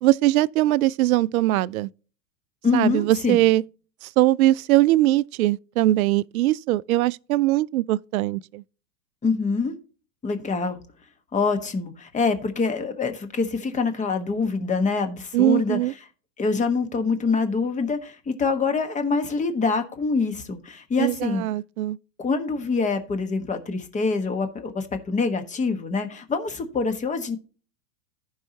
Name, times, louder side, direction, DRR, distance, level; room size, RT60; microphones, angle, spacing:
voice 1, 0.0-1.9 2.7-3.6 4.0-8.6 15.3-15.9 21.0-22.0, right 16 dB, 60° right, 0.5 m, -21 dB
voice 2, 2.6-3.4 9.2-9.7 10.2-10.8 11.3-15.8 16.4-21.4 22.2-27.4, left 4 dB, 15° left, 1.3 m, -25 dB
14.5 x 5.6 x 2.8 m
hypercardioid pair, 110°, 50 cm